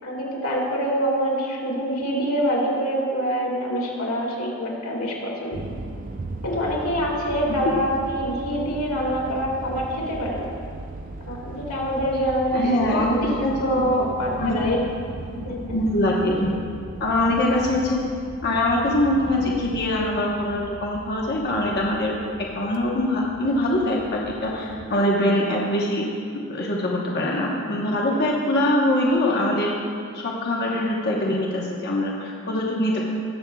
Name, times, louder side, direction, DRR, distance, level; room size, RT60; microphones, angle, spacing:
voice 1, 0.0-5.6 6.4-10.5 11.2-13.3 13.6-14.8, equal, 65° left, -3 dB, 2.2 m, -25 dB
sound 1, 5.5-24.9, right 2 dB, 40° right, 0.5 m, -38 dB
voice 2, 12.5-13.8 14.4-14.6 15.3-16.5 17.0-18.1 18.4-29.7 30.1-33.0, left 1 dB, 45° left, -2 dB, 1.1 m, -23 dB
20.0 x 7.2 x 2.3 m, 2.3 s
head